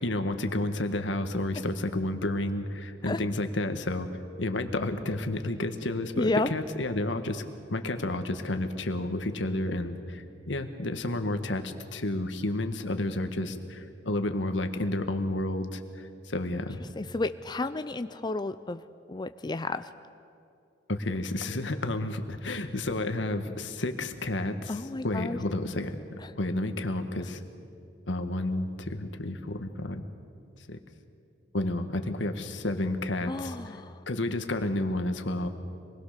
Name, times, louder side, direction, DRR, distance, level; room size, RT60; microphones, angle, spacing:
voice 1, 0.0-4.1 4.4-7.4 7.7-16.8 20.9-27.4 28.1-30.0 30.7-30.8 31.5-33.8 34.1-35.5, left 1 dB, 85° left, 7 dB, 1.5 m, -31 dB
voice 2, 6.2-6.5 17.0-18.8 19.1-19.9 24.7-25.4 26.2-26.3 33.3-34.0, left 2 dB, 25° left, 10 dB, 0.5 m, -31 dB
26.0 x 20.5 x 6.7 m, 2.5 s
head